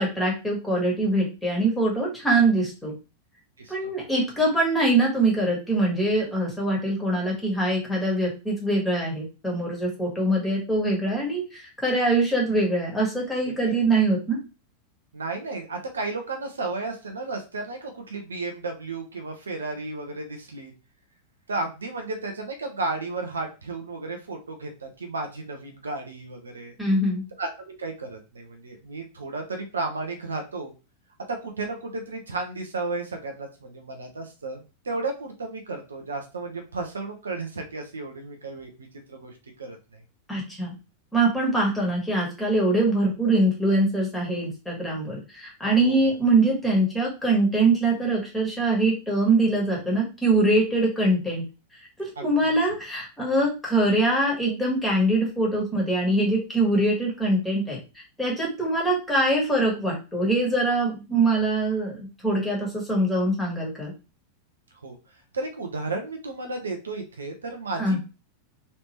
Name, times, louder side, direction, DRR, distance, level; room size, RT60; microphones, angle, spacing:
voice 1, 0.0-2.9 3.7-14.4 26.8-27.2 40.3-40.7 41.1-51.4 52.0-57.8 58.2-63.9 67.8-68.0, right 2 dB, 5° left, -3 dB, 1.6 m, -23 dB
voice 2, 13.4-13.8 15.1-20.7 21.5-26.7 27.4-30.7 31.3-40.0 45.8-46.0 52.2-52.5 64.8-68.0, right 3 dB, 70° right, 4 dB, 0.8 m, -33 dB
3.3 x 3.1 x 3.0 m, 0.30 s
figure-of-eight pair, 90°, 0 cm